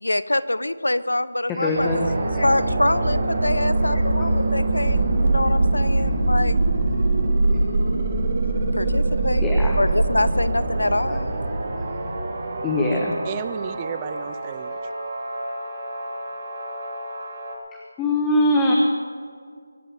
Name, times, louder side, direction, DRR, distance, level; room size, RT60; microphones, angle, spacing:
voice 1, 0.0-2.0 2.4-6.6 8.8-11.3, left 1 dB, 75° left, 16 dB, 0.8 m, -25 dB
voice 2, 1.5-2.4 4.2-4.3 9.4-9.8 11.1-11.2 12.6-13.2 17.7-18.7, left 1 dB, 10° left, -1 dB, 1.1 m, -23 dB
sound 1, 1.7-17.5, right 2 dB, 40° right, 3.0 m, -23 dB
voice 3, 13.2-14.8, right 9 dB, 20° right, 14 dB, 0.5 m, -33 dB
23.5 x 8.4 x 7.2 m, 2.1 s
figure-of-eight pair, 160°, 0 cm